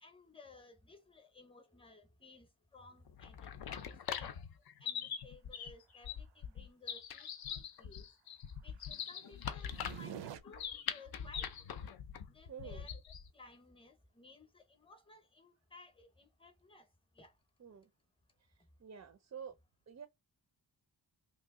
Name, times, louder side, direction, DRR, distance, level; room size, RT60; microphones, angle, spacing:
voice 1, 0.0-4.3 4.8-8.1 8.6-11.5 12.3-13.0 13.3-16.9 17.1-17.3, left 3 dB, 15° left, 0.7 m, -58 dB
sound 1, 3.1-13.3, left 8 dB, 60° left, 0.5 m, -43 dB
sound 2, 9.0-10.4, right 9 dB, 85° right, 0.6 m, -46 dB
voice 2, 12.5-12.9 17.6-17.9 18.4-18.5 18.8-19.6 19.9-20.1, right 7 dB, 40° right, 0.4 m, -49 dB
2.9 x 2.6 x 3.6 m
wide cardioid pair, 130°, 42 cm